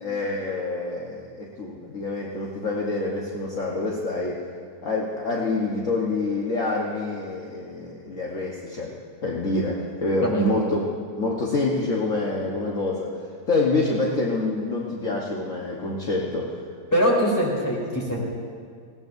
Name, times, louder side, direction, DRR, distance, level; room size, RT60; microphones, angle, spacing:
voice 1, 0.0-4.4 4.8-8.9 9.2-10.9 11.2-13.1 13.5-16.5, left 2 dB, 50° left, -3 dB, 1.5 m, -26 dB
voice 2, 10.2-10.6 16.9-18.2, equal, 10° left, -5 dB, 3.4 m, -22 dB
20.0 x 18.0 x 2.6 m, 2.1 s
omnidirectional pair, 1.8 m